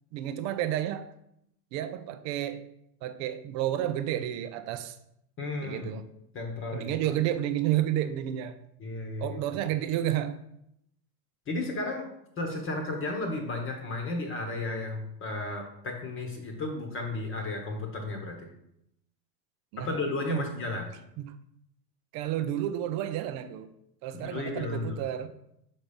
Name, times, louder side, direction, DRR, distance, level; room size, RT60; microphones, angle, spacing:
voice 1, 0.1-1.1 1.7-2.7 3.0-5.0 5.6-6.0 6.7-8.6 9.2-10.4 19.7-20.0 20.3-20.5 21.2-21.4 22.1-23.7 24.0-25.3, right 12 dB, 35° right, 0.5 m, -31 dB
voice 2, 5.4-6.0 6.3-6.9 8.8-9.4 11.5-12.1 12.4-18.5 19.8-20.9 24.2-25.0, left 2 dB, 25° left, 1.2 m, -33 dB
5.9 x 4.2 x 5.1 m
hypercardioid pair, 110°, 50 cm